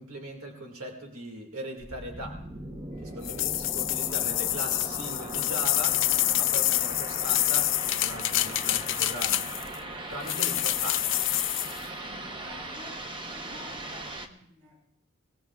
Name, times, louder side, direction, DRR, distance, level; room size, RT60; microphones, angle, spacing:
voice 1, 0.0-2.4 3.0-6.0 6.3-9.5 10.1-11.2, right 1 dB, 90° right, 2 dB, 2.0 m, -39 dB
sound 1, 1.8-14.3, right 1 dB, 25° right, 0.8 m, -39 dB
sound 2, 3.2-9.8 10.3-11.8, left 16 dB, 60° left, 0.4 m, -27 dB
voice 2, 12.0-13.0 13.2-14.8, left 1 dB, 70° right, -3 dB, 6.7 m, -49 dB
21.5 x 17.5 x 2.4 m, 0.72 s
head